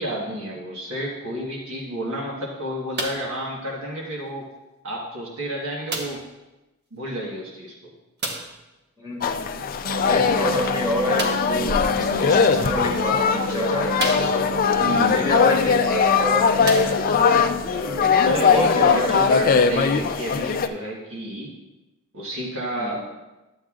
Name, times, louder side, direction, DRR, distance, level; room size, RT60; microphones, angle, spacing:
voice 1, 0.0-4.5 4.8-6.2 6.9-7.7 14.8-15.3 18.2-21.5 22.1-23.1, right 1 dB, 75° right, -3 dB, 1.4 m, -30 dB
sound 1, 2.9-3.4 4.3-4.4 5.9-6.3 8.2-8.6 11.1-11.6 12.6-12.7 13.3-13.4 13.9-14.7 15.9-16.0 16.6-17.3 18.1-18.2, right 2 dB, 50° right, 1.1 m, -31 dB
voice 2, 9.0-9.5 10.1-14.1 15.0-17.0 17.7-18.1 18.5-19.6 22.7-23.0, equal, 20° right, -7 dB, 2.9 m, -28 dB
sound 2, 9.2-20.7, left 6 dB, 40° left, 0.4 m, -20 dB
sound 3, 9.8-18.0, right 3 dB, 90° right, 0.4 m, -33 dB
12.0 x 7.7 x 2.5 m, 1.1 s
head